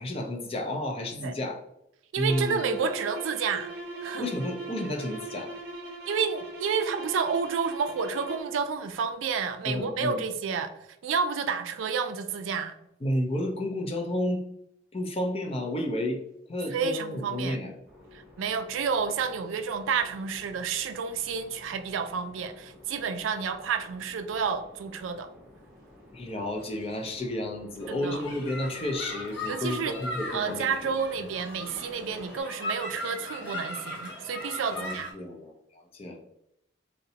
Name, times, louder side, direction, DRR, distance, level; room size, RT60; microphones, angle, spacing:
voice 1, 0.0-1.6 2.2-2.8 4.2-5.5 9.7-10.2 13.0-14.4 14.9-16.2 16.5-17.8 26.1-30.9 34.7-36.2, left 1 dB, 30° left, 3 dB, 0.4 m, -31 dB
voice 2, 2.1-3.7 4.0-4.3 6.1-10.7 11.0-12.7 16.7-17.6 18.4-25.3 27.9-28.2 29.4-29.9 30.3-35.1, right 6 dB, 85° right, 9 dB, 0.3 m, -30 dB
sound 1, 2.2-8.6, right 3 dB, 55° right, 0.8 m, -39 dB
sound 2, 17.9-32.4, left 1 dB, 5° right, 0.8 m, -52 dB
sound 3, 27.8-35.1, left 1 dB, 65° left, 0.7 m, -38 dB
3.8 x 2.1 x 2.7 m, 0.79 s
head